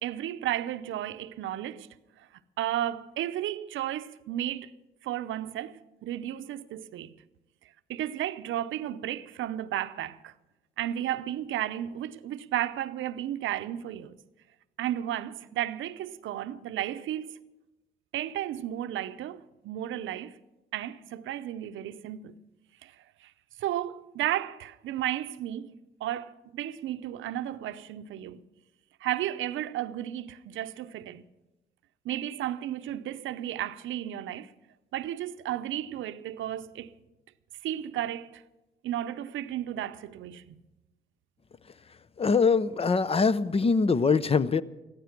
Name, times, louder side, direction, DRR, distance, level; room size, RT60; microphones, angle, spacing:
voice 1, 0.0-1.9 2.2-2.3 2.6-4.7 5.0-7.2 7.9-10.3 10.8-14.2 14.8-17.4 18.1-20.4 20.7-22.4 22.8-23.3 23.6-28.4 29.0-31.3 32.0-34.5 34.9-36.9 37.6-38.4 38.8-40.6, right 12 dB, 80° right, 0.7 m, -33 dB
voice 2, 42.2-44.6, left 5 dB, 30° left, 0.6 m, -23 dB
15.0 x 14.5 x 5.9 m
cardioid pair, 90°, 20 cm